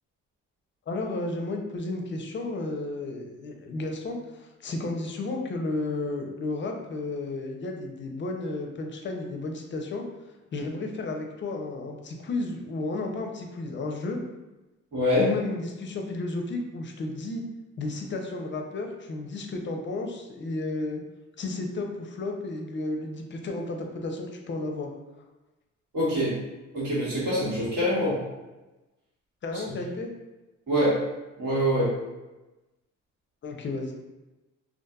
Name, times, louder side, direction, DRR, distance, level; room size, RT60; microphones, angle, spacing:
voice 1, 0.9-10.0 10.5-14.2 15.2-17.4 17.8-21.0 21.4-24.9 29.4-30.1 33.4-33.9, left 2 dB, 40° left, 3 dB, 0.5 m, -32 dB
voice 2, 14.9-15.3 25.9-26.3 26.7-28.2 30.7-31.0 31.4-31.9, equal, 80° right, -8 dB, 1.4 m, -24 dB
2.6 x 2.5 x 2.3 m, 1.1 s
cardioid pair, 90°, 30 cm